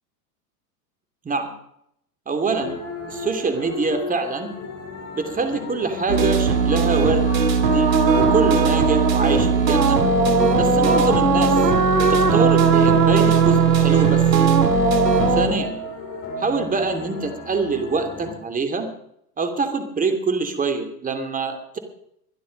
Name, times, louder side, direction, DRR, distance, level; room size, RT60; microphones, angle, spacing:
voice 1, 2.3-2.8 3.1-4.5 5.1-7.2 7.7-10.0 10.5-11.5 12.1-14.2 15.3-15.8 16.4-18.9 19.4-21.8, right 4 dB, 15° right, 7 dB, 2.8 m, -24 dB
djelem djelem roma hymn live, 2.6-18.3, left 3 dB, 30° left, 6.4 m, -35 dB
sound 1, 6.1-15.5, right 5 dB, 85° right, 2.8 m, -17 dB
22.0 x 11.5 x 5.3 m, 0.74 s
hypercardioid pair, 115°, 48 cm